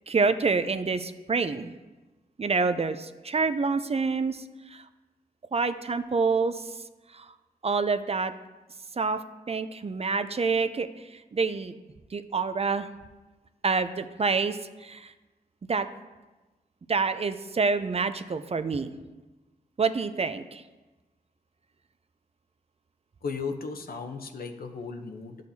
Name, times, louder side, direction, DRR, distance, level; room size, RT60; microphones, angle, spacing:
voice 1, 0.1-1.7 2.4-4.4 5.5-6.5 7.6-8.3 9.0-9.2 9.5-10.9 11.3-11.7 12.1-12.9 13.6-14.6 14.8-15.1 15.7-15.9 16.9-18.9 19.8-20.6, right 4 dB, 40° right, 10 dB, 0.5 m, -27 dB
voice 2, 23.2-25.4, left 4 dB, 70° left, 5 dB, 0.8 m, -35 dB
11.5 x 6.5 x 2.7 m, 1.2 s
cardioid pair, 50°, 16 cm